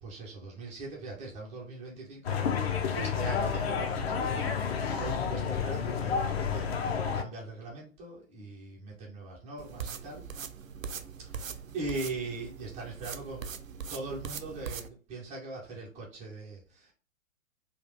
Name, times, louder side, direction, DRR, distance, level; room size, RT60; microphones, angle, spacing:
voice 1, 0.0-6.7 7.1-10.2 11.3-13.5 13.9-16.9, right 3 dB, 5° right, -7 dB, 0.4 m, -41 dB
sound 1, 2.2-7.2, left 6 dB, 50° left, 0.7 m, -30 dB
sound 2, 9.6-14.9, right 6 dB, 75° right, 0.6 m, -41 dB
3.8 x 2.3 x 3.2 m, 0.36 s
figure-of-eight pair, 115°, 40 cm